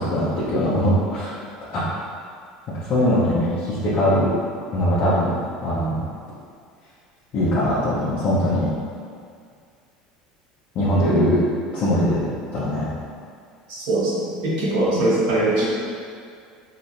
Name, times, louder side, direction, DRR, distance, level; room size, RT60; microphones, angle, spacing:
voice 1, 0.0-1.4 1.7-1.8 2.7-4.3 4.7-5.3 5.6-6.0 7.3-8.7 10.7-11.4 11.7-12.2 12.5-12.9, equal, 50° left, -10 dB, 1.0 m, -21 dB
voice 2, 13.7-15.7, right 2 dB, 70° right, -7 dB, 1.1 m, -21 dB
4.7 x 3.0 x 2.8 m, 2.2 s
hypercardioid pair, 75°, 4 cm